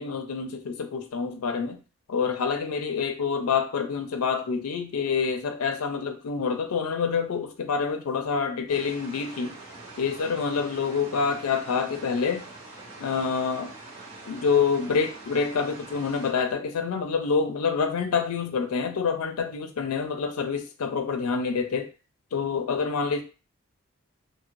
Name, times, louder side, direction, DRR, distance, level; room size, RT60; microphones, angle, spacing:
voice 1, 0.0-1.8 2.1-9.6 10.0-12.4 13.0-13.7 14.3-21.9 22.3-23.2, left 5 dB, 85° left, 7 dB, 0.4 m, -27 dB
sound 1, 8.7-16.3, right 2 dB, 55° right, 1.3 m, -44 dB
2.6 x 2.5 x 3.0 m, 0.33 s
head